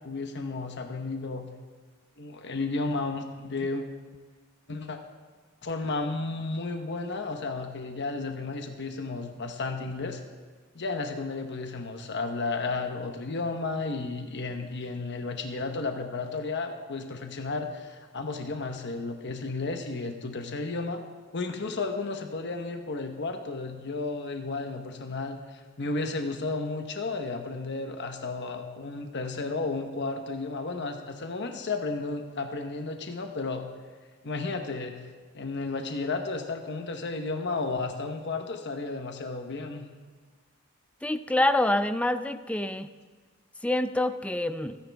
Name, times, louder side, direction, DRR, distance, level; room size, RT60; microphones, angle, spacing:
voice 1, 0.0-1.5 2.2-3.8 4.7-5.0 5.6-10.2 10.7-21.0 21.3-33.7 34.2-35.0 35.3-39.9, left 3 dB, 55° left, 5 dB, 1.1 m, -33 dB
voice 2, 41.0-42.9 43.6-44.8, left 1 dB, 5° left, 11 dB, 0.5 m, -26 dB
26.0 x 10.5 x 3.5 m, 1.5 s
head